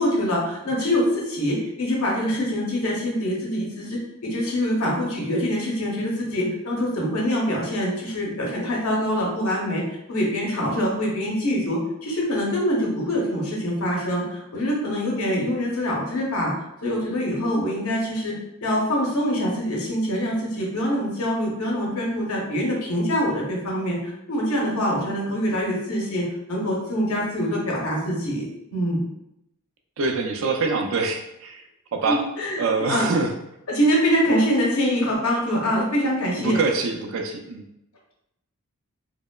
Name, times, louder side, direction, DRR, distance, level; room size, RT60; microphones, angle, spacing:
voice 1, 0.0-9.8 10.1-16.5 16.8-18.4 18.6-28.5 28.7-29.0 32.0-32.6 32.9-33.1 33.7-36.6, equal, 75° left, -3 dB, 0.7 m, -24 dB
voice 2, 30.0-31.6 31.9-32.2 32.6-33.3 36.4-37.6, right 3 dB, 60° right, 3 dB, 0.3 m, -24 dB
2.8 x 2.0 x 2.2 m, 0.82 s
head